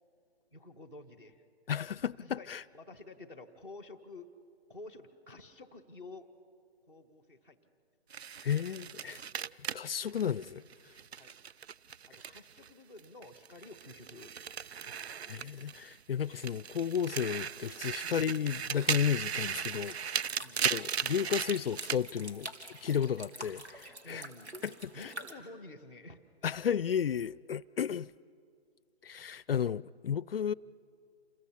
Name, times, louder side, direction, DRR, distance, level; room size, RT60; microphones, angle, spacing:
voice 1, 0.5-1.4 2.1-2.5 2.7-4.3 4.7-6.3 6.9-7.6 8.7-8.8 11.2-11.4 12.1-14.3 14.7-14.9 18.0-18.2 20.4-20.7 24.0-24.5 24.9-26.2 26.5-26.6, left 2 dB, 5° right, 0.6 m, -50 dB
voice 2, 1.7-2.6 8.4-9.2 9.7-10.6 15.3-20.3 20.7-22.5 22.8-24.2 24.6-25.1 26.4-28.1 29.0-30.5, left 8 dB, 60° left, 0.5 m, -33 dB
sound 1, 8.1-12.7 13.0-16.0 16.3-22.0, right 7 dB, 70° right, 0.6 m, -37 dB
sound 2, 19.3-25.3, right 2 dB, 85° right, 3.0 m, -48 dB
28.5 x 21.5 x 5.7 m
hypercardioid pair, 155°, 33 cm